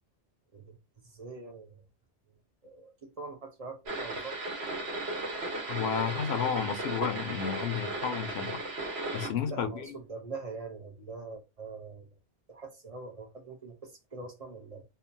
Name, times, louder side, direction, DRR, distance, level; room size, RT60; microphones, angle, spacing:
voice 1, 0.5-1.8 2.6-4.4 9.5-12.2 12.5-14.8, right 4 dB, 40° right, 0.6 m, -43 dB
sound 1, 3.9-9.3, right 2 dB, 75° right, 1.3 m, -35 dB
voice 2, 5.7-8.6 9.1-9.9, left 8 dB, 80° left, 0.8 m, -32 dB
2.9 x 2.2 x 2.5 m
omnidirectional pair, 1.1 m